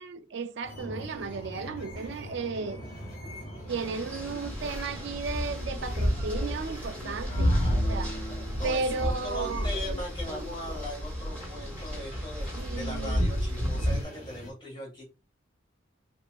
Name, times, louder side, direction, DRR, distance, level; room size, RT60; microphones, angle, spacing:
voice 1, 0.0-2.8 3.7-8.1 8.6-9.7 12.6-13.3, right 4 dB, 60° right, 0.4 m, -34 dB
sound 1, 0.6-14.5, equal, 45° left, 2.0 m, -43 dB
sound 2, 3.7-14.0, equal, 5° left, 1.9 m, -31 dB
voice 2, 7.3-15.0, left 1 dB, 25° left, 1.7 m, -40 dB
4.9 x 2.8 x 2.3 m
head